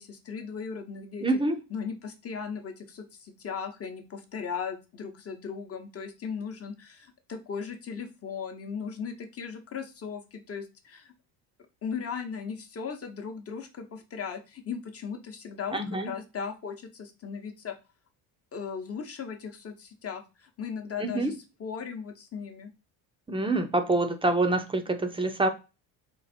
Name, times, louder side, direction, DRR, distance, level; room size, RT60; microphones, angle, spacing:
voice 1, 0.0-1.3 1.7-11.1 11.8-17.8 18.5-21.3 21.6-22.7, left 6 dB, 35° left, 6 dB, 0.9 m, -37 dB
voice 2, 1.2-1.6 15.7-16.1 21.0-21.4 23.3-25.5, right 2 dB, 15° right, 8 dB, 0.6 m, -26 dB
4.0 x 2.5 x 4.2 m, 0.29 s
cardioid pair, 105°, 40 cm